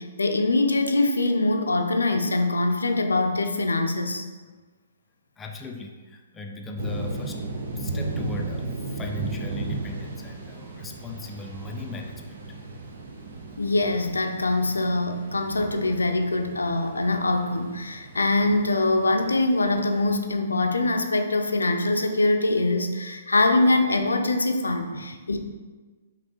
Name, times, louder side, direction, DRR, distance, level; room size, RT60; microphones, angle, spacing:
voice 1, 0.0-4.2 13.6-25.4, left 2 dB, 80° left, 5 dB, 0.4 m, -23 dB
voice 2, 5.4-7.4 7.8-12.6 24.9-25.1, left 2 dB, 15° left, 2 dB, 0.4 m, -38 dB
sound 1, 6.8-20.1, right 2 dB, 55° right, 0.7 m, -35 dB
5.0 x 2.9 x 3.0 m, 1.4 s
figure-of-eight pair, 125°, 0 cm